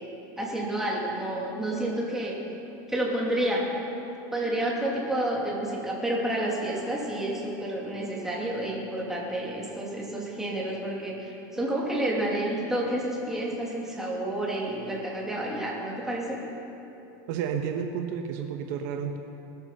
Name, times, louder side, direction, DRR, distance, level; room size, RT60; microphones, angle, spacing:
voice 1, 0.4-2.4 2.9-3.6 4.3-16.4, right 1 dB, 5° right, -4 dB, 2.8 m, -30 dB
voice 2, 17.3-19.2, right 7 dB, 65° right, 5 dB, 1.2 m, -31 dB
19.5 x 13.5 x 5.5 m, 2.9 s
supercardioid pair, 155°, 10 cm